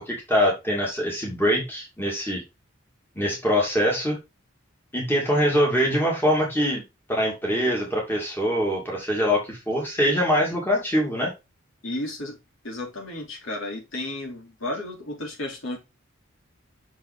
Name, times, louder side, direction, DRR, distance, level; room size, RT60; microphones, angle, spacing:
voice 1, 0.0-2.4 3.2-4.2 4.9-6.8 7.1-11.3, equal, 10° left, -2 dB, 2.6 m, -23 dB
voice 2, 11.8-12.4 12.6-15.8, left 1 dB, 70° left, 0 dB, 3.1 m, -33 dB
6.3 x 5.8 x 3.6 m, 0.24 s
head